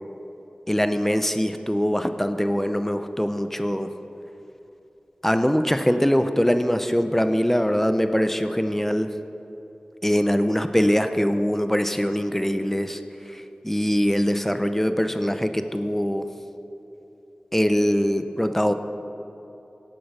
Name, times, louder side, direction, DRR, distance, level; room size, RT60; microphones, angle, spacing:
voice 1, 0.7-3.9 5.2-9.1 10.0-13.0 13.3-16.2 17.5-18.7, equal, 10° left, 8 dB, 0.7 m, -22 dB
16.5 x 8.5 x 5.6 m, 3.0 s
wide cardioid pair, 50°, 3 cm